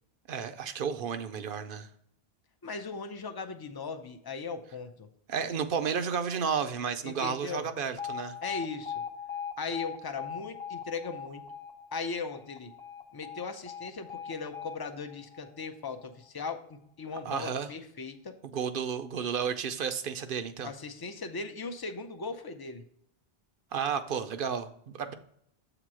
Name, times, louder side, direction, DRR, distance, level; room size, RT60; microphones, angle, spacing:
voice 1, 0.3-1.9 5.3-8.4 17.2-17.7 18.5-20.7 23.7-25.1, right 6 dB, 65° right, 9 dB, 0.7 m, -32 dB
voice 2, 2.6-5.1 7.0-7.7 8.4-9.0 9.6-11.4 11.9-12.7 13.1-18.3 20.6-22.8, left 4 dB, 30° left, 7 dB, 0.4 m, -38 dB
Alarm, 8.0-16.0, left 7 dB, 80° left, 1.2 m, -41 dB
7.7 x 3.0 x 6.1 m, 0.71 s
omnidirectional pair, 1.0 m